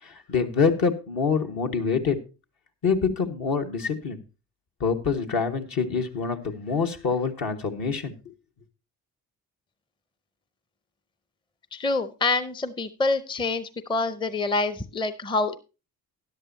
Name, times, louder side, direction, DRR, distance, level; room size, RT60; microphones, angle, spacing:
voice 1, 0.0-2.2 2.8-4.2 4.8-8.2, left 5 dB, 55° left, 4 dB, 1.5 m, -26 dB
voice 2, 11.7-15.6, left 3 dB, 10° left, 13 dB, 0.6 m, -26 dB
13.0 x 10.5 x 2.7 m, 0.31 s
hypercardioid pair, 50°, 44 cm